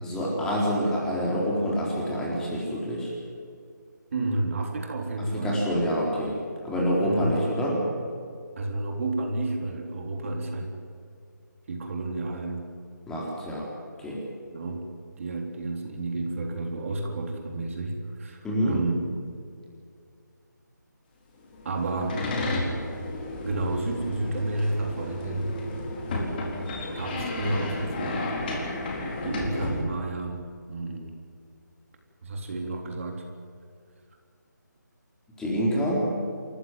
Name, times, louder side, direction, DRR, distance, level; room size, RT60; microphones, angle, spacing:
voice 1, 0.0-3.1 5.2-6.4 6.6-7.9 13.1-13.7 14.0-14.2 18.4-18.8 35.4-36.1, equal, 5° left, -4 dB, 4.1 m, -27 dB
voice 2, 4.1-5.6 7.0-7.4 8.6-10.7 11.7-12.7 14.5-14.9 15.2-19.0 21.6-22.2 23.4-25.6 26.9-28.6 29.2-30.4 30.7-31.1 32.2-33.2, right 2 dB, 45° right, 2 dB, 3.6 m, -31 dB
sound 1, 21.5-29.8, left 2 dB, 30° left, 4.2 m, -32 dB
28.5 x 15.0 x 9.4 m, 2.3 s
figure-of-eight pair, 160°, 10 cm